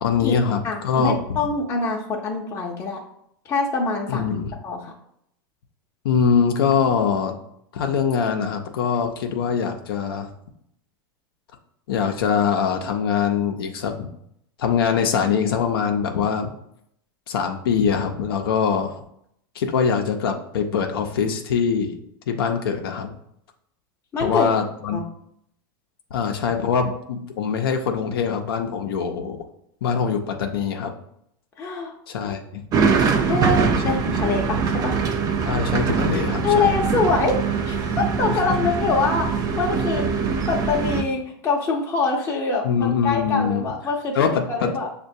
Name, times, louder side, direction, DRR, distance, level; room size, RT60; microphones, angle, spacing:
voice 1, 0.0-1.2 4.1-4.5 6.0-7.4 7.7-10.3 11.9-14.1 14.6-16.5 17.3-19.0 19.5-22.0 22.3-23.1 24.2-25.0 26.1-29.4 29.8-30.9 32.1-32.6 35.4-36.7 38.3-38.4 42.6-43.6 44.1-44.7, left 6 dB, 85° left, 4 dB, 0.5 m, -23 dB
voice 2, 0.6-3.0 3.4-4.3 4.6-4.9 24.1-24.5 24.9-25.0 31.6-31.9 33.2-35.0 36.4-37.4 37.7-40.1 40.5-44.9, left 4 dB, 25° left, -2 dB, 0.5 m, -24 dB
sound 1, 32.7-41.0, right 5 dB, 30° right, 0.4 m, -23 dB
6.3 x 2.2 x 2.6 m, 0.73 s
hypercardioid pair, 115°, 12 cm